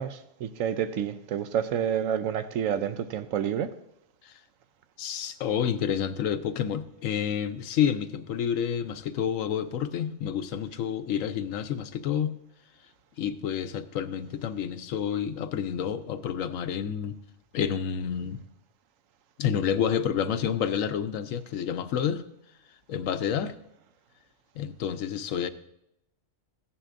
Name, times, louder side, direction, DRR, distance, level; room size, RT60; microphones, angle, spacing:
voice 1, 0.0-3.7, right 9 dB, 75° right, 1.0 m, -29 dB
voice 2, 5.0-12.4 13.2-17.2 17.5-18.4 19.4-22.2 22.9-23.5 24.6-25.5, left 8 dB, 75° left, 1.0 m, -29 dB
15.0 x 9.8 x 2.5 m
omnidirectional pair, 1.4 m